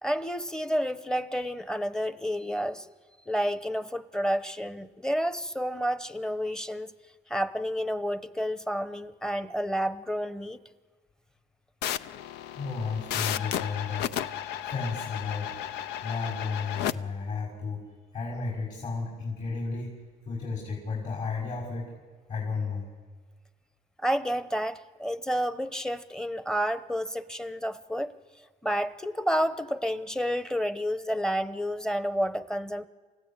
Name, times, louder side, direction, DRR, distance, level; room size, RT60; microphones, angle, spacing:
voice 1, 0.0-2.9 3.3-6.9 7.3-10.6 24.0-28.1 28.6-32.9, equal, 5° left, 13 dB, 0.8 m, -30 dB
sound 1, 11.8-16.9, left 10 dB, 85° left, 0.6 m, -33 dB
voice 2, 12.5-14.2 14.7-15.6 16.0-17.8 18.1-19.9 20.3-21.9 22.3-22.9, left 4 dB, 50° left, -1 dB, 5.8 m, -33 dB
29.0 x 15.5 x 8.9 m, 1.5 s
cardioid pair, 110°, 17 cm